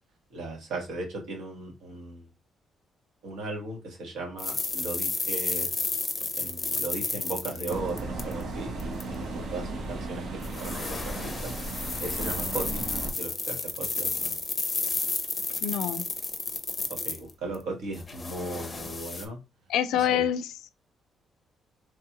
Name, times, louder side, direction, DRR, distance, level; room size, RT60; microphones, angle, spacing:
voice 1, 0.3-2.3 3.2-5.7 6.3-14.4 16.9-19.4 19.9-20.3, right 2 dB, 85° right, 1.2 m, -37 dB
sound 1, 4.4-8.4 8.8-9.0 10.4-17.6 17.9-19.2, left 3 dB, 30° left, 0.5 m, -32 dB
sound 2, 7.7-13.1, right 2 dB, 65° right, 0.7 m, -35 dB
voice 2, 15.6-16.0 19.7-20.4, left 10 dB, 85° left, 0.3 m, -25 dB
3.3 x 2.3 x 2.9 m
cardioid pair, 90°, 0 cm